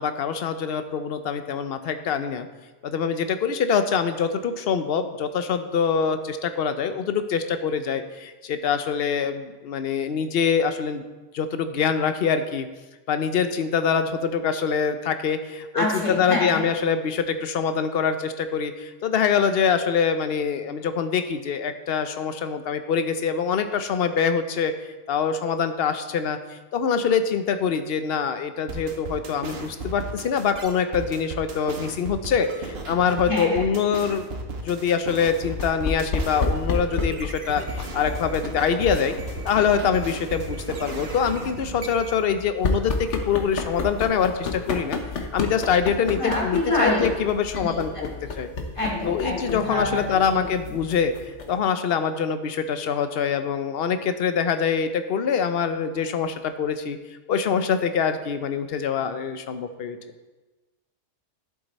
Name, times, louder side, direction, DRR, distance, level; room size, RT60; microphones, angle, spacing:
voice 1, 0.0-2.5 2.8-11.0 11.3-12.7 13.1-24.7 25.1-34.3 34.6-39.1 39.4-45.0 45.3-47.9 48.4-48.5 49.1-51.1 51.5-57.0 57.3-60.0, left 6 dB, 60° left, 9 dB, 0.9 m, -24 dB
voice 2, 15.7-16.6 33.3-33.6 46.1-47.1 47.5-48.0 48.8-50.4, left 2 dB, 25° left, -4 dB, 2.6 m, -26 dB
sound 1, 28.7-42.2, right 2 dB, 60° right, 1.3 m, -35 dB
sound 2, 35.5-51.7, left 3 dB, 85° left, 1.3 m, -32 dB
11.0 x 7.4 x 4.1 m, 1.2 s
omnidirectional pair, 1.2 m